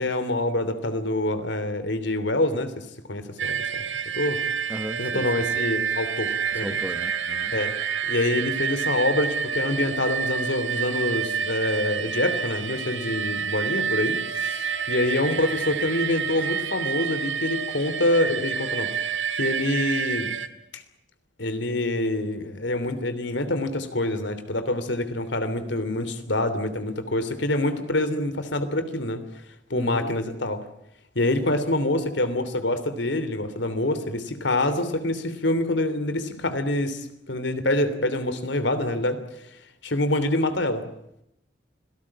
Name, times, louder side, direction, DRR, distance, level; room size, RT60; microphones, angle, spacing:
voice 1, 0.0-3.8 4.1-4.4 5.0-6.8 7.5-7.8 8.0-18.9 19.4-20.3 20.7-20.8 21.4-29.2 29.7-30.6 31.1-39.2 39.8-40.8, left 1 dB, 75° left, 11 dB, 3.1 m, -26 dB
sound 1, 3.4-20.5, right 7 dB, 85° right, 1.8 m, -28 dB
voice 2, 4.7-5.2 6.5-7.5 29.7-30.1, equal, 10° right, 10 dB, 1.1 m, -36 dB
26.5 x 18.0 x 8.7 m, 0.80 s
head